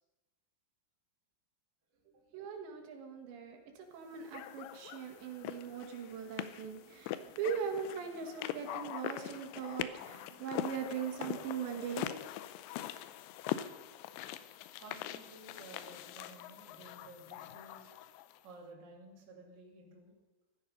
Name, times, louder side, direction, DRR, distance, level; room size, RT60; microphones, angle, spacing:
voice 1, 2.3-12.2, right 7 dB, 85° right, 3 dB, 3.9 m, -40 dB
sound 1, 4.3-18.4, left 13 dB, 90° left, 2.9 m, -43 dB
voice 2, 14.8-17.9 18.4-20.1, right 2 dB, 30° right, -1 dB, 2.6 m, -54 dB
15.0 x 13.5 x 5.3 m, 1.1 s
omnidirectional pair, 4.9 m